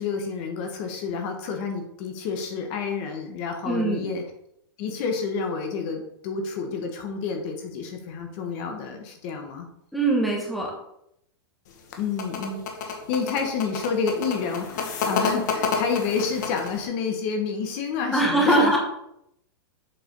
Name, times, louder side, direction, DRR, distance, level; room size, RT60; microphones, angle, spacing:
voice 1, 0.0-4.2 4.8-9.6 12.0-18.8, left 5 dB, 30° left, 4 dB, 1.0 m, -29 dB
voice 2, 3.6-4.1 9.9-10.7 18.1-18.8, right 2 dB, ahead, -3 dB, 1.0 m, -22 dB
sound 1, 11.7-16.8, left 5 dB, 50° left, 1.5 m, -29 dB
7.7 x 4.8 x 5.2 m, 0.77 s
supercardioid pair, 180°, 13 cm